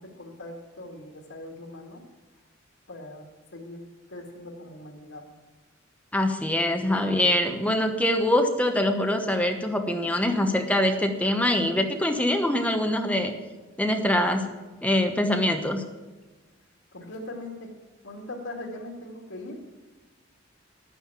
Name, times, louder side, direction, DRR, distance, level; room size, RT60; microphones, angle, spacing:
voice 1, 0.0-2.0 2.9-3.8 4.1-5.3 16.9-17.7 18.0-19.6, left 1 dB, 80° left, -3 dB, 2.4 m, -40 dB
voice 2, 6.1-13.3 13.8-14.5 14.8-15.8, left 1 dB, 5° left, 5 dB, 0.9 m, -24 dB
12.0 x 9.5 x 7.4 m, 1.3 s
head